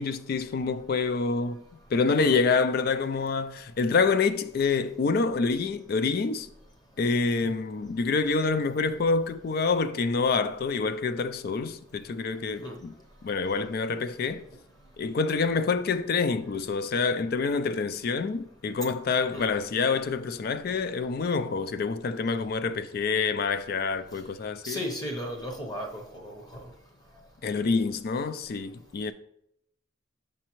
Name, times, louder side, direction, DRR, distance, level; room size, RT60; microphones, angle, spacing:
voice 1, 0.0-1.6 1.9-6.5 7.0-12.9 13.2-14.4 15.0-24.8 27.4-29.1, left 4 dB, 50° left, 0.3 m, -27 dB
voice 2, 24.6-26.3, equal, 20° left, 0.8 m, -34 dB
6.4 x 5.1 x 3.0 m
head